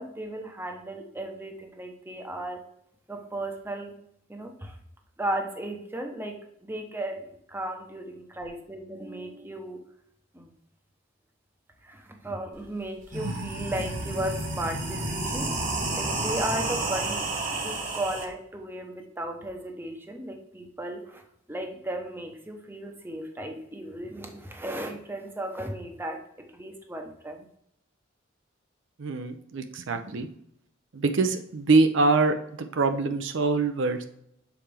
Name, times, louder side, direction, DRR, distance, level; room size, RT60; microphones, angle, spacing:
voice 1, 0.0-2.6 3.1-3.9 4.3-4.7 5.2-6.4 6.6-9.8 10.3-10.5 11.8-15.5 16.0-21.2 21.5-26.2 26.5-27.5, right 1 dB, 10° right, 3 dB, 0.8 m, -35 dB
sound 1, 12.5-12.6 13.0-18.2, right 2 dB, 40° right, 1.1 m, -30 dB
voice 2, 29.0-30.3 30.9-34.0, right 3 dB, 65° right, 7 dB, 0.5 m, -24 dB
7.0 x 4.3 x 3.4 m, 0.71 s
head